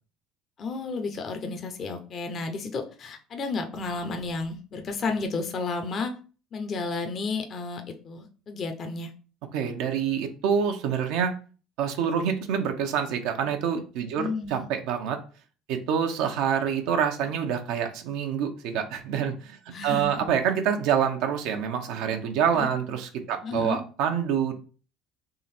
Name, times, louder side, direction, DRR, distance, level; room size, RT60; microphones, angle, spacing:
voice 1, 0.6-6.1 6.5-9.1 14.2-14.7 19.7-20.1 22.5-22.7 23.4-23.8, left 4 dB, 45° left, 5 dB, 0.7 m, -32 dB
voice 2, 9.5-11.3 11.8-15.2 15.7-19.6 19.8-24.5, right 7 dB, 80° right, 4 dB, 0.8 m, -26 dB
3.8 x 3.0 x 4.3 m, 0.38 s
cardioid pair, 110°, 0 cm